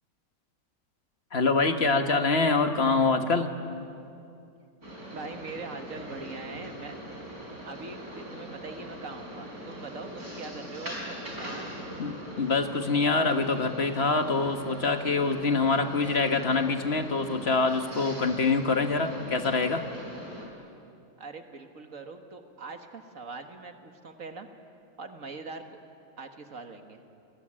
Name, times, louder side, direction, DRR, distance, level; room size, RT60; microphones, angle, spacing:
voice 1, 1.3-3.5 12.0-19.8, left 3 dB, 45° left, 6 dB, 1.8 m, -25 dB
sound 1, 4.8-20.5, equal, 85° right, 5.4 m, -41 dB
voice 2, 5.1-7.0 7.6-11.8 21.2-24.5 25.0-25.8 26.2-27.0, right 3 dB, 65° right, 6 dB, 2.0 m, -42 dB
27.0 x 21.0 x 10.0 m, 2.5 s
omnidirectional pair, 1.5 m